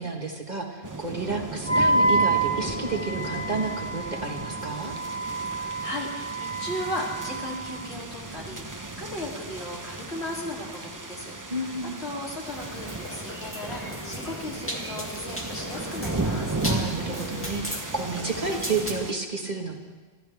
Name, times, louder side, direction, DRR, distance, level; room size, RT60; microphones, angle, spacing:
voice 1, 0.0-4.9 11.5-12.0 16.6-19.8, right 3 dB, 40° right, 1 dB, 1.7 m, -31 dB
sound 1, 0.8-19.1, right 2 dB, 20° right, 0.7 m, -35 dB
Wind instrument woodwind instrument, 1.7-7.8, right 2 dB, 90° left, 1.5 m, -28 dB
voice 2, 5.5-11.7 12.0-16.5, left 1 dB, 70° left, -3 dB, 3.4 m, -36 dB
sound 2, 12.4-18.9, equal, 10° left, 1.9 m, -37 dB
24.5 x 14.5 x 3.5 m, 1.3 s
omnidirectional pair, 1.1 m